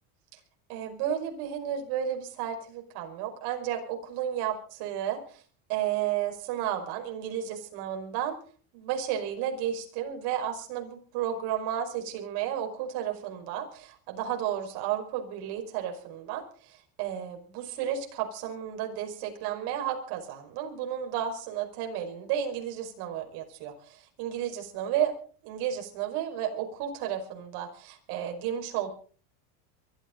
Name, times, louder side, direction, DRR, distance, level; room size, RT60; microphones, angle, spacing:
voice 1, 0.7-5.4 5.7-8.4 8.7-25.1 25.4-28.9, right 10 dB, 65° right, 4 dB, 5.4 m, -32 dB
23.5 x 14.0 x 4.0 m, 0.43 s
supercardioid pair, 140°, 43 cm